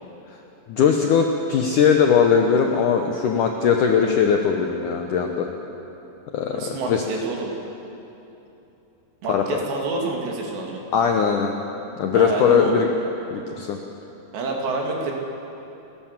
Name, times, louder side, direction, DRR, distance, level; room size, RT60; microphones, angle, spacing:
voice 1, 0.7-5.5 6.3-7.0 9.3-9.6 10.9-11.5 12.0-12.9 13.3-13.8, left 7 dB, 75° left, 3 dB, 1.9 m, -20 dB
voice 2, 6.5-7.5 9.2-10.8 12.1-12.7 14.3-15.1, right 3 dB, 75° right, 0 dB, 4.6 m, -27 dB
28.5 x 13.5 x 7.4 m, 3.0 s
omnidirectional pair, 5.0 m